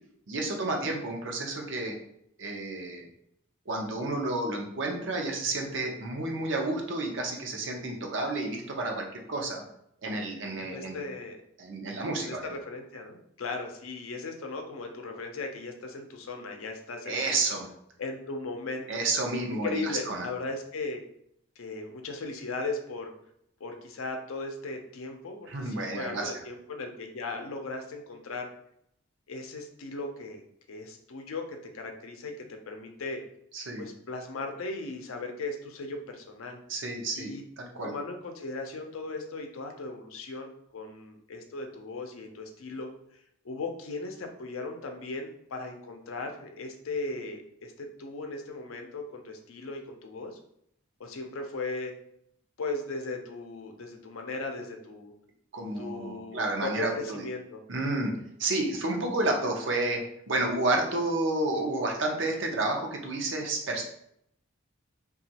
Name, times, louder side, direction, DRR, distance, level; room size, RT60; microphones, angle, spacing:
voice 1, 0.3-1.9 2.4-3.1 3.7-9.6 10.0-11.0 11.6-12.5 17.1-17.7 18.9-20.3 25.5-26.3 33.5-33.9 36.7-37.9 55.5-57.2 57.7-58.1 58.4-60.0 60.3-63.8, right 2 dB, 65° right, 1 dB, 0.6 m, -30 dB
voice 2, 10.6-11.4 12.2-17.4 18.0-19.0 19.5-21.0 21.6-23.1 23.6-28.5 29.3-30.4 30.7-33.2 33.8-36.6 37.1-37.4 37.8-42.9 43.4-50.4 51.0-51.9 52.6-55.1 55.8-57.6, left 3 dB, 85° left, 4 dB, 0.5 m, -37 dB
2.9 x 2.3 x 2.8 m, 0.72 s
head